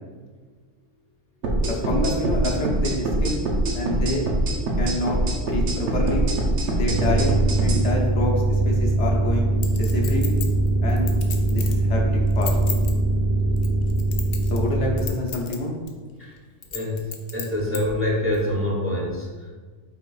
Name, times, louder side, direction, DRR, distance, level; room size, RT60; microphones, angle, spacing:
sound 1, 1.4-7.8, right 1 dB, 75° right, 1.1 m, -23 dB
voice 1, 1.6-3.5 3.7-4.3 4.8-6.3 6.7-7.3 7.6-10.3 10.8-11.1 11.5-12.5 14.5-15.8, left 2 dB, 75° left, -1 dB, 1.1 m, -27 dB
sound 2, 6.9-15.1, right 2 dB, 55° right, 0.6 m, -22 dB
Chink clink, 9.6-11.8 12.3-12.9 13.6-14.7 15.0-15.6 15.9-16.0 16.6-17.8 18.3-18.4, left 7 dB, 55° left, 0.6 m, -33 dB
voice 2, 16.7-19.5, left 1 dB, 15° right, -4 dB, 0.7 m, -26 dB
5.3 x 4.2 x 2.4 m, 1.5 s
omnidirectional pair, 1.2 m